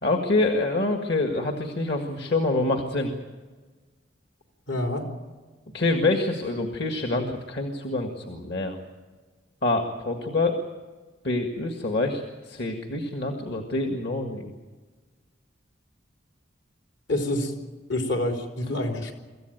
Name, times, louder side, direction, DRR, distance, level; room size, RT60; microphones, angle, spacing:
voice 1, 0.0-3.1 5.7-8.8 9.6-10.6 11.2-14.5, left 2 dB, 55° left, 4 dB, 1.8 m, -26 dB
voice 2, 4.7-5.0 17.1-17.5 17.9-19.1, left 1 dB, 75° left, 3 dB, 3.7 m, -27 dB
24.5 x 15.0 x 9.2 m, 1.4 s
head